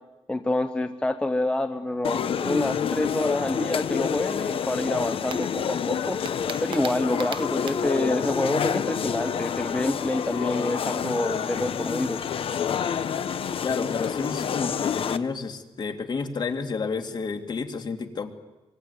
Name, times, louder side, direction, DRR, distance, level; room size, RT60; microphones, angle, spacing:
voice 1, 0.3-6.2 6.6-12.2, left 1 dB, 10° left, 8 dB, 0.9 m, -27 dB
sound 1, 2.0-15.2, left 7 dB, 60° left, 1.0 m, -28 dB
sound 2, 5.3-8.0, right 7 dB, 55° right, 1.1 m, -39 dB
voice 2, 13.6-18.3, left 5 dB, 45° left, 6 dB, 2.4 m, -30 dB
25.0 x 24.0 x 9.7 m, 1.1 s
wide cardioid pair, 175°, 10 cm